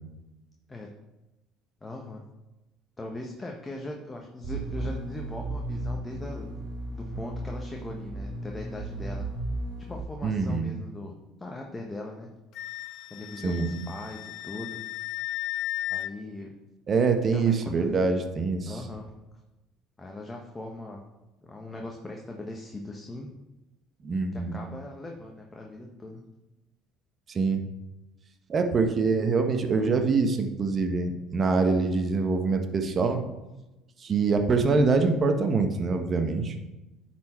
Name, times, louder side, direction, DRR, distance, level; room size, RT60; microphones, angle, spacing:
voice 1, 1.8-2.2 3.0-6.5 6.9-9.3 9.9-12.3 13.1-14.8 15.9-16.5 17.3-17.9 18.6-19.1 20.0-21.0 21.4-23.3 24.3-26.2, left 2 dB, 15° left, 1 dB, 1.0 m, -40 dB
sound 1, 4.4-10.0, right 2 dB, 75° right, 2.1 m, -35 dB
voice 2, 10.2-10.7 13.4-13.7 16.9-18.8 24.0-24.6 27.3-27.6 28.5-33.2 34.0-36.5, right 4 dB, 35° right, 6 dB, 1.1 m, -24 dB
Wind instrument woodwind instrument, 12.6-16.1, left 15 dB, 65° left, 0.4 m, -35 dB
10.0 x 4.5 x 4.3 m, 1.0 s
supercardioid pair, 100°, 0 cm